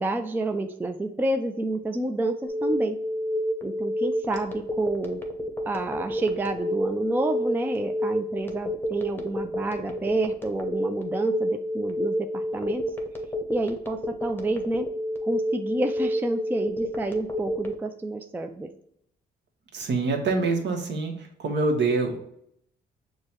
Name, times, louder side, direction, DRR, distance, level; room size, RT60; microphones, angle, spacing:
voice 1, 0.0-3.0 3.6-5.2 5.7-12.8 13.5-14.9 15.2-18.7, right 2 dB, 10° right, 6 dB, 0.4 m, -29 dB
Telephone, 2.5-17.7, equal, 10° left, 0.8 m, -29 dB
voice 2, 19.7-21.1 21.4-22.2, right 3 dB, 65° right, 3 dB, 1.0 m, -25 dB
6.4 x 2.2 x 2.9 m, 0.71 s
cardioid pair, 90°, 20 cm